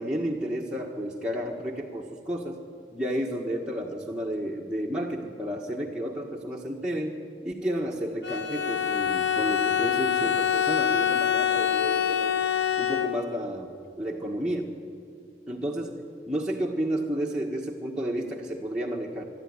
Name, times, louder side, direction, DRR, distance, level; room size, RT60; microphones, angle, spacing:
voice 1, 0.0-2.6 2.9-12.3 12.8-14.7 15.5-16.0 16.3-19.3, right 1 dB, 5° right, -3 dB, 1.5 m, -31 dB
Bowed string instrument, 8.2-13.5, left 9 dB, 80° left, 1.2 m, -25 dB
22.5 x 12.5 x 9.8 m, 2.3 s
head